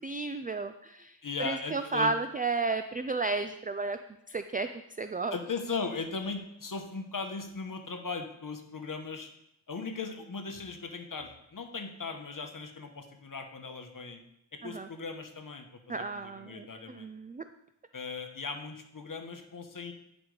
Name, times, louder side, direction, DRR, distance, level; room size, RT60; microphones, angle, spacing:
voice 1, 0.0-1.2 1.4-4.0 4.3-4.7 5.0-5.3 14.6-14.9 15.9-17.4, right 3 dB, 20° right, 9 dB, 0.4 m, -32 dB
voice 2, 1.2-2.1 5.3-9.3 9.7-14.2 14.5-17.1 17.9-19.9, left 4 dB, 50° left, 6 dB, 1.0 m, -38 dB
9.8 x 5.2 x 4.8 m, 0.78 s
wide cardioid pair, 75°, 43 cm